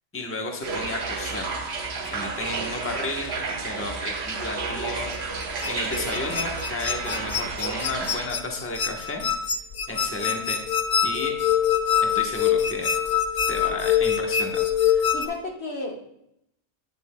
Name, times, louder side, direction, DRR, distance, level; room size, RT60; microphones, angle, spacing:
voice 1, 0.1-1.6 2.0-5.2 5.6-9.3 9.9-10.6 11.0-11.4 12.0-12.9 13.5-15.0, left 2 dB, 15° left, 1 dB, 1.0 m, -33 dB
sound 1, 0.6-8.3, right 4 dB, 75° right, 1.2 m, -31 dB
sound 2, 5.1-15.3, left 8 dB, 45° left, 0.5 m, -24 dB
voice 2, 9.9-10.5 15.1-16.0, left 3 dB, 70° left, 0 dB, 1.6 m, -34 dB
10.5 x 9.1 x 2.2 m, 0.77 s
omnidirectional pair, 1.1 m